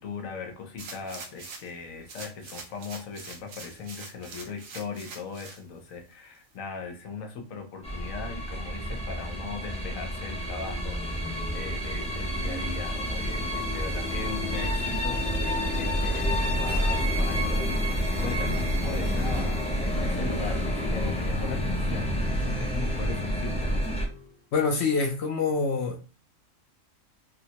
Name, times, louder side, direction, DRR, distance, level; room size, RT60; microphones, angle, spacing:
voice 1, 0.0-15.2 15.7-23.8, left 5 dB, 85° left, 1.1 m, -39 dB
sound 1, 0.8-1.8 2.1-5.6 6.1-6.2, right 4 dB, 90° right, 1.0 m, -43 dB
sound 2, 7.8-24.1, equal, 10° left, 0.3 m, -28 dB
sound 3, 17.8-24.4, left 2 dB, 45° right, 0.9 m, -43 dB
voice 2, 24.5-26.0, left 4 dB, 65° left, 0.7 m, -26 dB
3.5 x 2.1 x 2.8 m
omnidirectional pair, 1.4 m